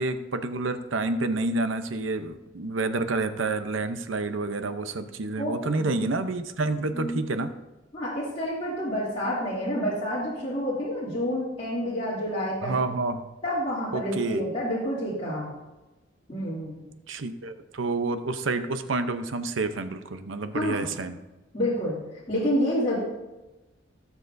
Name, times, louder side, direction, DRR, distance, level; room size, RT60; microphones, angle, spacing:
voice 1, 0.0-7.5 12.6-13.2 13.9-14.4 17.1-21.2, right 3 dB, 85° right, 9 dB, 0.8 m, -29 dB
voice 2, 5.4-5.9 6.9-7.2 7.9-12.7 13.4-15.5 16.3-16.9 20.5-20.9 21.5-22.0 22.3-23.0, equal, 35° left, -9 dB, 2.8 m, -28 dB
17.0 x 7.3 x 2.7 m, 1.1 s
head